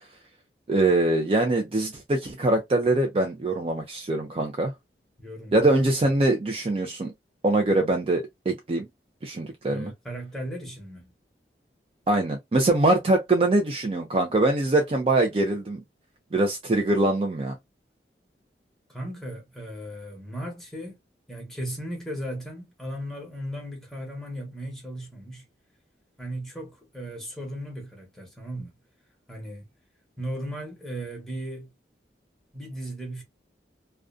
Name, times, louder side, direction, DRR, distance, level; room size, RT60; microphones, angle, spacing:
voice 1, 0.7-4.7 5.5-7.1 7.4-8.9 9.2-9.9 12.1-15.8 16.3-17.6, right 2 dB, 30° right, 0.4 m, -23 dB
voice 2, 5.2-5.6 9.7-11.1 18.9-20.9 21.3-25.4 26.2-28.7 29.3-29.6 30.2-31.7 32.5-33.2, equal, ahead, 0.9 m, -36 dB
2.4 x 2.2 x 2.3 m
head